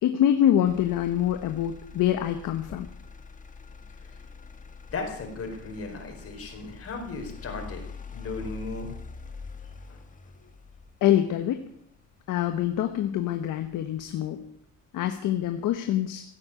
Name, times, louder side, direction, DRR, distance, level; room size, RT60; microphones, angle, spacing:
voice 1, 0.0-2.9 11.0-11.6 12.3-14.4 14.9-16.2, left 11 dB, 80° left, 6 dB, 1.4 m, -25 dB
Motor vehicle (road), 0.7-14.7 15.1-15.6, left 5 dB, 25° left, 1.5 m, -45 dB
voice 2, 4.9-7.8 8.1-8.9 9.9-10.0, left 3 dB, 45° left, 3 dB, 4.5 m, -36 dB
16.5 x 8.9 x 8.9 m, 0.67 s
cardioid pair, 135°, 31 cm